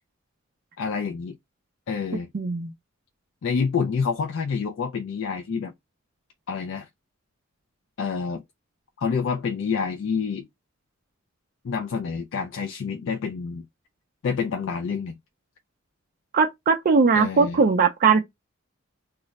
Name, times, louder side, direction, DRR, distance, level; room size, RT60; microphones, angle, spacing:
voice 1, 0.8-1.4 1.9-2.3 3.4-5.7 6.5-6.9 8.0-8.4 9.0-10.5 11.6-13.6 14.2-15.2 17.1-17.6, left 5 dB, 65° left, 0.3 m, -28 dB
voice 2, 2.3-2.7 16.3-18.2, right 5 dB, 45° right, 0.4 m, -19 dB
2.4 x 2.1 x 3.9 m
head